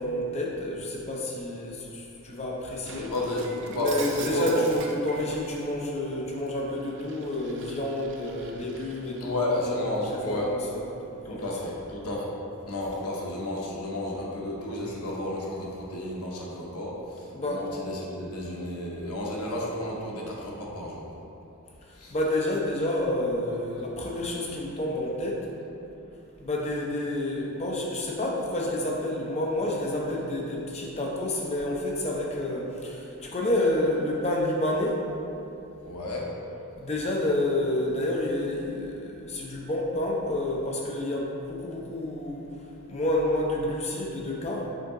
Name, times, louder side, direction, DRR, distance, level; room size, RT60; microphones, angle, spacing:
voice 1, 0.0-3.1 3.7-9.9 10.3-11.7 17.3-17.6 22.1-25.5 26.4-35.0 36.8-42.4 42.9-44.7, left 1 dB, 30° left, -2 dB, 0.6 m, -29 dB
Shatter, 2.8-5.7 6.1-9.3, right 5 dB, 55° right, 0.4 m, -43 dB
voice 2, 3.0-4.4 9.2-10.5 11.2-12.3 12.7-21.1 22.0-22.1 35.8-36.3, left 1 dB, 85° left, -3 dB, 0.9 m, -32 dB
5.1 x 2.8 x 3.7 m, 2.8 s
head